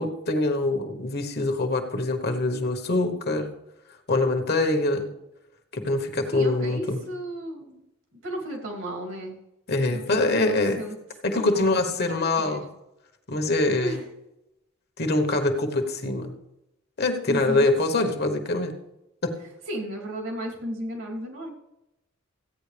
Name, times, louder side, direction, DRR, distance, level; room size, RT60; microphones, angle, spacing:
voice 1, 0.0-3.5 4.1-5.1 5.7-7.0 9.7-10.8 11.2-12.6 13.3-14.0 15.0-16.3 17.0-18.7 19.2-19.3, left 2 dB, 50° left, 5 dB, 1.3 m, -24 dB
voice 2, 6.3-7.9 8.2-9.4 9.9-11.0 11.3-11.7 12.1-12.6 13.8-14.0 17.3-17.6 19.7-21.5, equal, 75° right, -1 dB, 3.1 m, -34 dB
15.5 x 9.2 x 3.4 m, 0.91 s
head